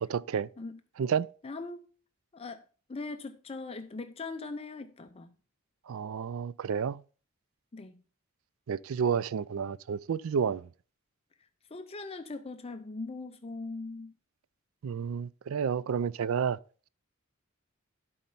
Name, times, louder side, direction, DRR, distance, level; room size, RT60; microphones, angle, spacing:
voice 1, 0.0-0.5 1.0-1.3 5.9-7.0 8.7-10.7 14.8-16.6, right 7 dB, 75° right, 0.4 m, -30 dB
voice 2, 1.4-1.9 2.3-2.6 2.9-5.3 7.7-8.0 11.7-14.1, left 3 dB, 30° left, 0.5 m, -40 dB
11.5 x 4.3 x 5.3 m
head